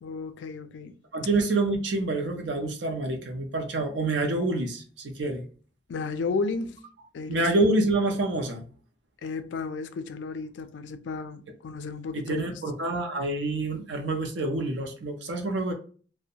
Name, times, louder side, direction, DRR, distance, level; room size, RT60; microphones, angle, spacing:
voice 1, 0.0-0.9 5.9-6.8 7.1-7.5 9.2-12.4, left 4 dB, 75° left, 0.3 m, -33 dB
voice 2, 1.1-5.4 7.3-8.6 12.1-15.7, right 2 dB, 70° right, 0.5 m, -27 dB
2.4 x 2.0 x 2.7 m
head